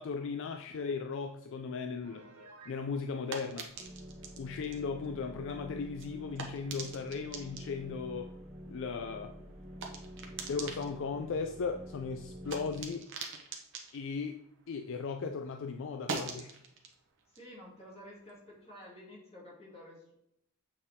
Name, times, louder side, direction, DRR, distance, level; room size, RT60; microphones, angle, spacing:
voice 1, 0.0-2.2 2.7-3.7 4.3-8.3 8.7-9.4 10.5-13.1 13.9-14.4 14.7-16.6, left 5 dB, 60° left, 6 dB, 0.4 m, -37 dB
Piano, 2.0-2.8, right 2 dB, 85° right, 1.8 m, -54 dB
sound 1, 2.5-15.2 15.5-18.8, right 4 dB, 55° right, 1.0 m, -46 dB
sound 2, 3.8-12.8, equal, 5° right, 1.4 m, -48 dB
voice 2, 17.3-20.1, left 1 dB, 25° left, -5 dB, 2.6 m, -51 dB
7.6 x 4.3 x 3.5 m, 0.76 s
head